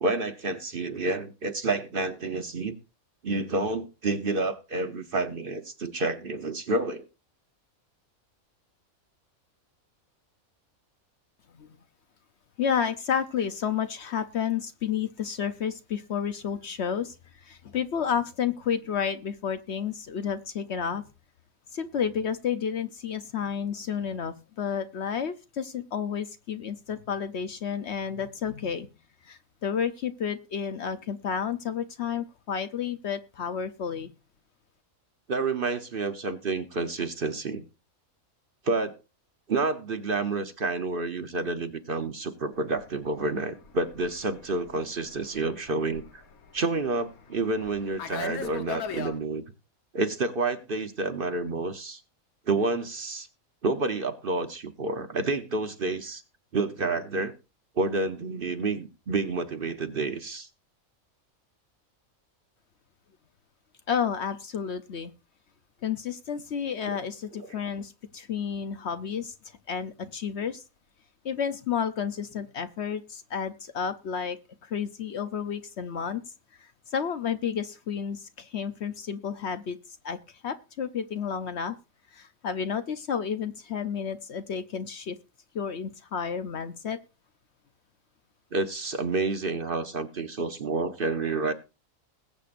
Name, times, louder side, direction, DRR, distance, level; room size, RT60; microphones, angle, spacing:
voice 1, 0.0-2.7 3.2-7.1 35.3-37.6 38.6-39.0 39.5-46.2 46.5-49.4 49.9-52.0 52.5-53.3 53.6-56.2 56.5-57.3 57.8-60.5 67.4-67.5 88.5-91.5, right 3 dB, 45° right, 8 dB, 1.0 m, -29 dB
voice 2, 12.6-17.1 17.4-21.1 21.7-28.9 29.2-34.1 63.9-65.1 65.8-69.3 69.7-70.6 71.2-74.4 74.6-76.2 76.6-79.8 80.0-81.8 82.1-85.2 85.5-87.0, left 7 dB, 60° left, 10 dB, 0.9 m, -31 dB
Fixed-wing aircraft airplane, 42.7-49.2, left 6 dB, 80° left, 1.6 m, -40 dB
20.5 x 8.2 x 2.5 m, 0.30 s
omnidirectional pair, 1.5 m